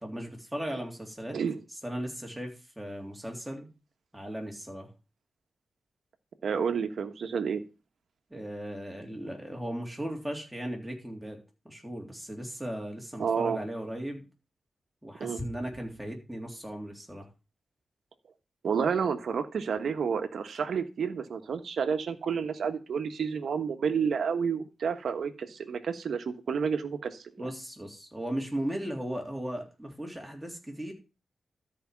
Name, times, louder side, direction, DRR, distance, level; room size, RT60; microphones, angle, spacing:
voice 1, 0.0-1.4 1.8-3.7 4.1-4.9 8.3-11.4 11.6-14.2 15.0-17.3 27.4-30.9, equal, 5° right, 0 dB, 3.4 m, -37 dB
voice 2, 6.4-7.6 13.2-13.6 15.2-15.4 18.6-27.2, right 6 dB, 80° right, 8 dB, 1.3 m, -30 dB
13.0 x 5.1 x 5.9 m, 0.31 s
wide cardioid pair, 100°, 0 cm